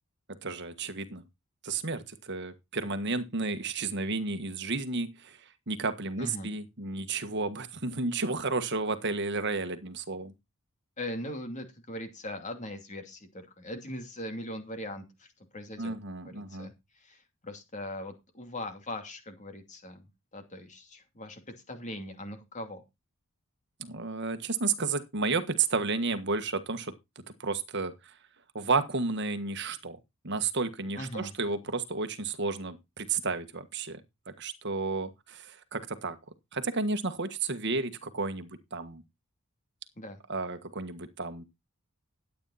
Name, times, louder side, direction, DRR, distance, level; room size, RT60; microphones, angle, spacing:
voice 1, 0.4-1.2 1.6-5.4 5.7-10.3 15.8-16.7 23.8-26.9 27.4-28.1 28.5-30.0 30.2-34.0 34.4-36.2 36.5-39.0 40.3-41.4, right 3 dB, 50° right, 1.5 m, -32 dB
voice 2, 6.2-6.5 11.0-15.9 16.2-20.1 20.3-22.8 30.9-31.3 40.0-40.2, left 1 dB, 35° left, 2.6 m, -40 dB
12.0 x 9.3 x 4.2 m
head